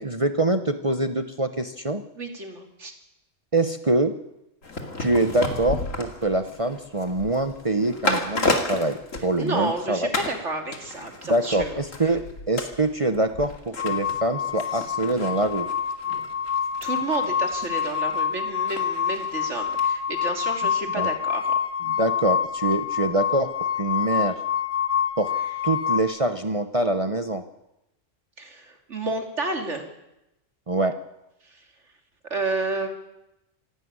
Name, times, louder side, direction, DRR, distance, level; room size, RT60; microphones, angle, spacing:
voice 1, 0.0-2.0 3.5-4.1 5.0-10.1 11.3-15.7 21.0-21.1 22.0-23.5 23.8-24.4 25.2-25.3 25.6-27.4 30.7-31.0, right 2 dB, 30° right, 8 dB, 1.0 m, -24 dB
voice 2, 2.2-2.9 9.4-12.2 16.8-21.5 28.4-29.9 31.4-31.7 32.3-32.9, right 2 dB, 65° right, 4 dB, 3.1 m, -30 dB
sound 1, 4.6-9.8 10.1-10.4 10.7-19.9 20.2-20.3, left 2 dB, 85° left, 2.8 m, -33 dB
sound 2, 13.8-26.0, left 7 dB, 65° left, 1.5 m, -27 dB
26.0 x 12.5 x 9.7 m, 0.90 s
omnidirectional pair, 1.3 m